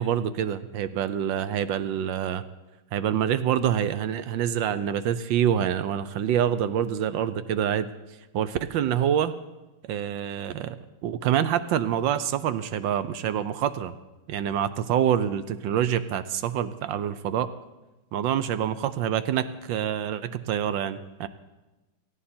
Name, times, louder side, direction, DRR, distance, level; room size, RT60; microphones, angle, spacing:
voice 1, 0.0-2.4 2.9-7.9 8.3-9.3 9.9-10.8 11.0-14.0 14.3-17.5 18.1-21.3, right 9 dB, 75° right, 13 dB, 1.3 m, -26 dB
18.0 x 14.5 x 4.3 m, 1.1 s
omnidirectional pair, 2.2 m